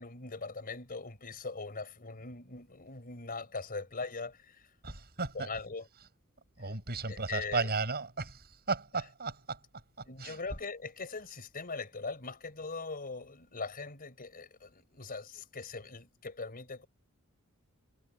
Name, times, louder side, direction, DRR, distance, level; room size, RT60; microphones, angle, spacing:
voice 1, 0.0-4.7 5.3-5.9 7.1-7.7 10.1-16.9, left 4 dB, 40° left, 4.7 m, -41 dB
voice 2, 4.8-5.5 6.6-9.6 10.0-10.4, right 4 dB, 45° right, 7.2 m, -35 dB
head